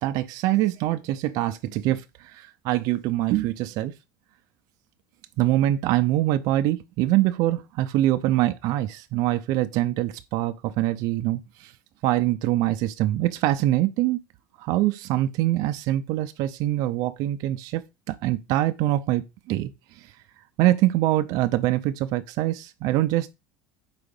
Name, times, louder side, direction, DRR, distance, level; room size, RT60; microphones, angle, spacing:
voice 1, 0.0-3.9 5.4-11.7 12.0-14.2 14.6-17.8 18.1-19.7 20.6-23.3, right 15 dB, 60° right, 0.5 m, -24 dB
4.9 x 3.8 x 5.2 m
supercardioid pair, 130°, 7 cm